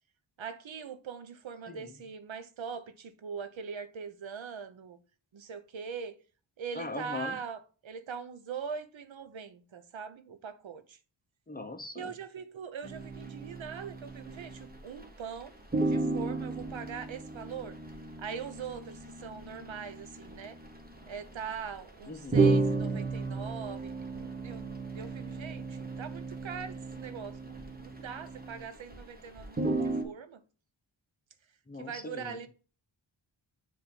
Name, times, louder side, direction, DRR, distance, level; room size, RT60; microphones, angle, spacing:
voice 1, 0.4-5.0 5.3-6.2 6.6-11.0 12.0-15.5 15.8-17.8 18.2-20.6 21.1-30.4 31.8-32.5, right 6 dB, 85° right, 0.9 m, -42 dB
voice 2, 6.7-7.4 11.5-12.1 22.1-22.4 31.7-32.5, left 3 dB, 20° left, 0.9 m, -40 dB
sound 1, 12.8-15.1 15.4-15.5 15.7-29.0 29.3-30.0, right 3 dB, 20° right, 1.3 m, -33 dB
7.1 x 3.4 x 5.2 m
wide cardioid pair, 95°, 45 cm